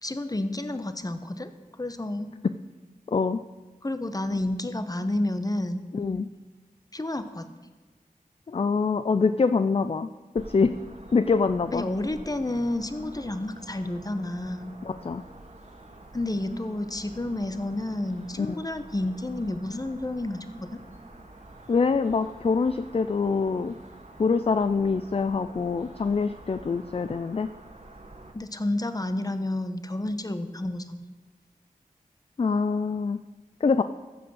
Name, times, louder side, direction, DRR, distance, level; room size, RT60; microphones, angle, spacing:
voice 1, 0.0-1.5 1.8-2.3 3.8-5.8 6.9-7.5 11.7-14.7 16.1-20.8 28.3-31.0, left 1 dB, 25° left, 9 dB, 1.0 m, -30 dB
voice 2, 3.1-3.4 5.9-6.3 8.5-10.1 10.3-10.7 11.1-11.8 14.8-15.2 18.4-18.5 21.7-23.7 24.2-27.5 32.4-33.2 33.6-33.8, left 4 dB, 40° left, 11 dB, 0.4 m, -24 dB
sound 1, 10.3-28.3, right 2 dB, 50° right, 1.7 m, -48 dB
14.5 x 6.0 x 6.3 m, 1.3 s
cardioid pair, 45°, 15 cm